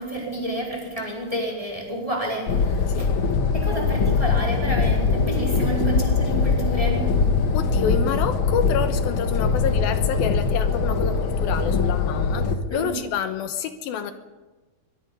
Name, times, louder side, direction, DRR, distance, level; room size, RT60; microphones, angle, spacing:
voice 1, 0.0-3.1 3.5-7.1 12.7-13.0, right 1 dB, 10° right, -1 dB, 4.1 m, -29 dB
sound 1, 2.5-12.6, left 5 dB, 60° left, 1.3 m, -22 dB
voice 2, 7.5-14.1, left 8 dB, 80° left, 9 dB, 2.8 m, -28 dB
23.5 x 22.0 x 5.5 m, 1.2 s
omnidirectional pair, 4.3 m